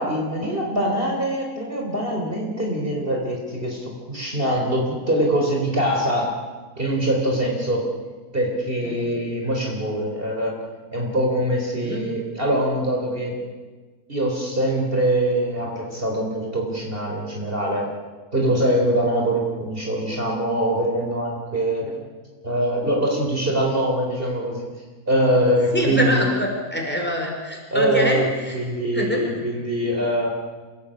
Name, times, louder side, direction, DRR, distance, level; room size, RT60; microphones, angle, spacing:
voice 1, 0.0-6.4 6.8-7.9 8.3-10.6 10.9-13.4 14.1-17.9 18.3-21.8 22.4-24.7 25.1-26.2 27.7-28.3 28.5-30.3, right 1 dB, 35° right, -1 dB, 4.1 m, -23 dB
voice 2, 25.7-28.6 28.9-29.4, equal, 5° left, 0 dB, 5.1 m, -25 dB
27.5 x 17.5 x 8.8 m, 1.4 s
omnidirectional pair, 1.5 m